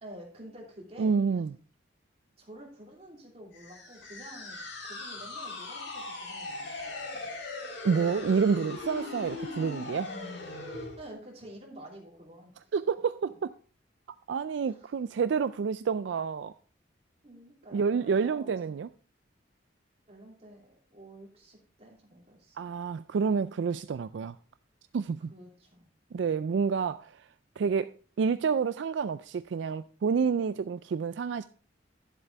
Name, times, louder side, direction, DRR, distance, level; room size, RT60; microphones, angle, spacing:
voice 1, 0.0-1.2 2.4-7.3 11.0-12.7 14.7-14.9 17.2-18.7 20.1-22.6 25.3-25.9, right 1 dB, 30° right, 2.9 m, -49 dB
voice 2, 1.0-1.5 7.8-10.1 12.7-13.5 14.3-16.5 17.7-18.9 22.6-24.4 24.9-25.3 26.1-27.3 27.6-27.9 28.2-31.4, right 5 dB, 70° right, 0.3 m, -28 dB
sound 1, 3.5-11.0, left 2 dB, 75° left, 3.3 m, -39 dB
11.0 x 7.5 x 3.4 m
head